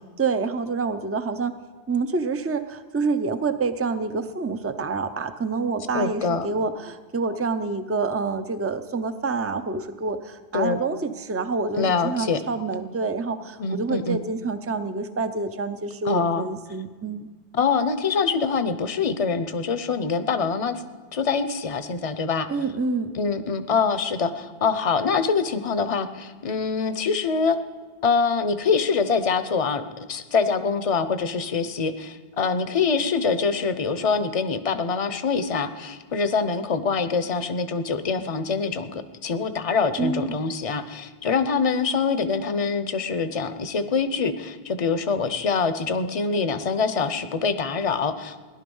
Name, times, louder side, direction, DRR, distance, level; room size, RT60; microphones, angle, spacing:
voice 1, 0.2-1.6 1.9-17.3 22.5-23.1 40.0-40.3, right 4 dB, 15° right, 10 dB, 0.5 m, -27 dB
voice 2, 5.9-6.5 10.5-10.8 11.8-12.4 13.6-14.2 16.0-16.4 17.5-20.8 21.1-22.5 23.1-27.6 28.0-48.4, left 5 dB, 35° left, 11 dB, 0.7 m, -24 dB
17.5 x 11.0 x 5.4 m, 1.5 s
omnidirectional pair, 1.1 m